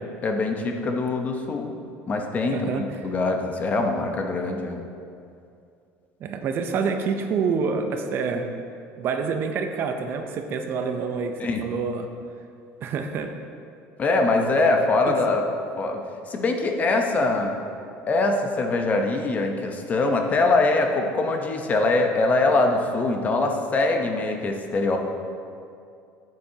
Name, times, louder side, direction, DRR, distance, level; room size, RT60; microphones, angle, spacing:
voice 1, 0.2-1.7 2.1-4.8 11.4-11.6 14.0-15.4 15.8-17.5 18.1-25.0, left 3 dB, 30° left, 3 dB, 0.8 m, -23 dB
voice 2, 2.5-2.8 6.2-8.5 9.0-12.1 12.8-13.3 15.1-15.2, right 5 dB, 45° right, 6 dB, 0.6 m, -27 dB
10.0 x 7.6 x 2.8 m, 2.5 s
cardioid pair, 130°, 5 cm